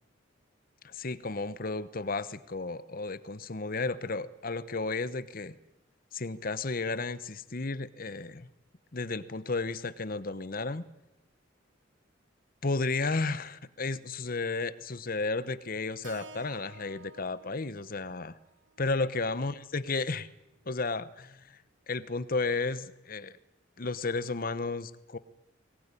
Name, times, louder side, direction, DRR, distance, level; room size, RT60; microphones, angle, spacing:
voice 1, 0.8-5.6 6.1-8.5 8.9-10.8 12.6-18.3 18.8-20.3 20.7-21.6 21.9-23.4 23.8-25.2, left 3 dB, 45° left, 15 dB, 1.0 m, -33 dB
Keyboard (musical), 16.0-20.3, right 3 dB, 65° right, 1.6 m, -53 dB
22.0 x 19.5 x 9.8 m, 0.96 s
head